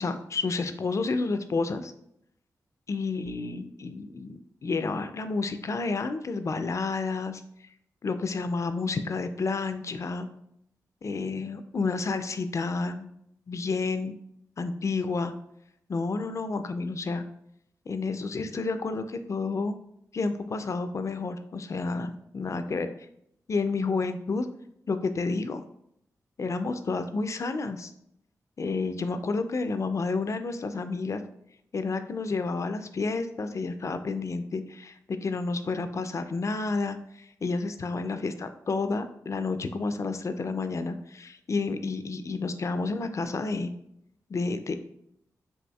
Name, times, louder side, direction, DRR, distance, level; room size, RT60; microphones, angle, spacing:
voice 1, 0.0-1.9 2.9-7.4 8.0-10.3 11.0-13.1 13.5-14.1 14.6-15.3 15.9-17.2 17.9-19.8 20.1-22.9 23.5-24.5 24.9-25.6 26.4-27.9 28.6-31.2 31.7-43.7 44.3-44.7, left 3 dB, 50° left, 9 dB, 0.3 m, -30 dB
4.1 x 2.7 x 2.3 m, 0.74 s
cardioid pair, 60°, 7 cm